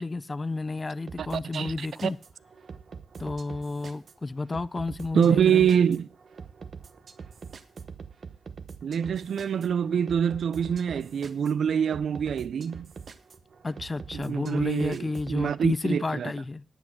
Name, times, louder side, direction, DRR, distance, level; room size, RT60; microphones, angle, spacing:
voice 1, 0.0-2.2 3.2-5.7 13.6-16.6, left 3 dB, 25° left, 0.5 m, -31 dB
sound 1, 1.1-15.8, right 6 dB, 50° right, 1.0 m, -44 dB
voice 2, 1.2-2.1 5.1-6.1 8.8-12.9 14.1-16.3, right 8 dB, 75° right, 0.4 m, -25 dB
10.0 x 8.5 x 6.3 m
wide cardioid pair, 160°, 0 cm